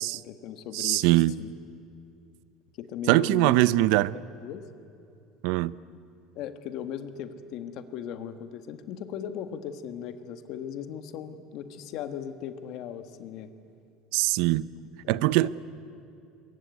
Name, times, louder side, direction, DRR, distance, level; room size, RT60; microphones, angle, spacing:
voice 1, 0.0-1.5 2.8-3.9 4.1-4.6 6.3-13.5 15.0-15.5, left 9 dB, 55° left, 1.5 m, -38 dB
voice 2, 0.7-1.4 3.1-4.2 5.4-5.7 14.1-14.7 15.1-15.5, right 17 dB, 70° right, 0.6 m, -22 dB
23.5 x 22.5 x 9.5 m
cardioid pair, 160°, 0 cm